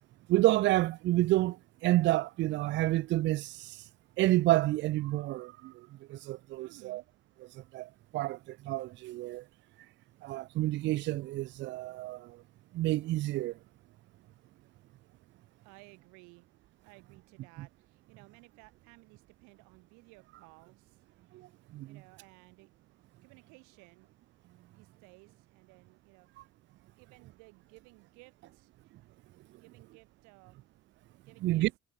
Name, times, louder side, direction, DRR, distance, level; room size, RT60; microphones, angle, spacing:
voice 1, 0.3-3.8 4.2-7.0 7.5-9.4 10.2-12.4 12.7-13.6 21.3-22.0 31.4-31.7, right 17 dB, 40° right, 0.4 m, -29 dB
voice 2, 6.6-7.1 15.6-16.5 16.8-21.0 21.8-22.7 23.2-24.1 24.7-26.4 27.0-28.7 29.6-30.7 31.2-31.7, right 31 dB, 80° right, 6.7 m, -58 dB
cardioid pair, 150°, 29 cm